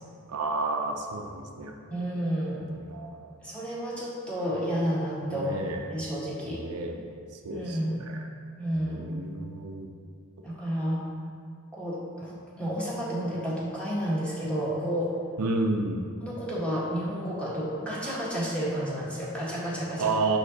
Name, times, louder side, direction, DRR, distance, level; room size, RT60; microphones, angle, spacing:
voice 1, 0.3-1.7 2.8-3.2 5.3-5.9 6.5-7.2 7.4-8.2 8.8-9.9 15.4-16.1 20.0-20.4, right 3 dB, 75° right, 3 dB, 0.5 m, -31 dB
voice 2, 1.9-2.6 3.4-6.6 7.5-8.0 8.6-9.1 10.4-11.0 11.7-15.2 16.2-20.2, equal, 5° left, -7 dB, 1.3 m, -31 dB
6.4 x 5.7 x 2.8 m, 2.2 s
head